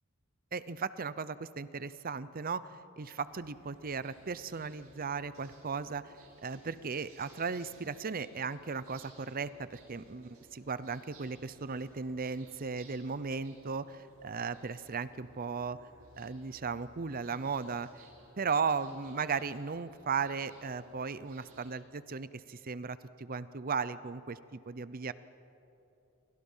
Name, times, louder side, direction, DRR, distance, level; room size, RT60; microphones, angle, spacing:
voice 1, 0.5-2.7 3.0-6.1 6.4-15.8 16.2-17.9 18.4-25.1, right 5 dB, 40° right, 16 dB, 0.7 m, -36 dB
sound 1, 3.3-21.7, right 2 dB, 85° right, 7.6 m, -60 dB
30.0 x 24.5 x 5.6 m, 2.9 s
head